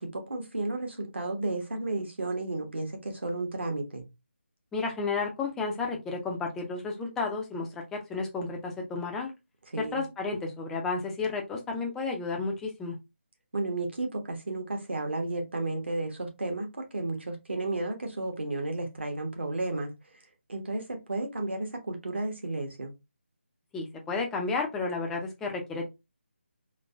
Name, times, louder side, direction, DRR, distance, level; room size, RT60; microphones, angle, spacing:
voice 1, 0.0-4.1 9.7-10.0 13.5-19.9 20.5-22.9, right 2 dB, 60° right, 1.2 m, -33 dB
voice 2, 4.7-9.3 9.8-13.0 23.7-25.9, left 4 dB, 5° left, 0.4 m, -32 dB
3.9 x 2.8 x 2.4 m
figure-of-eight pair, 155°, 7 cm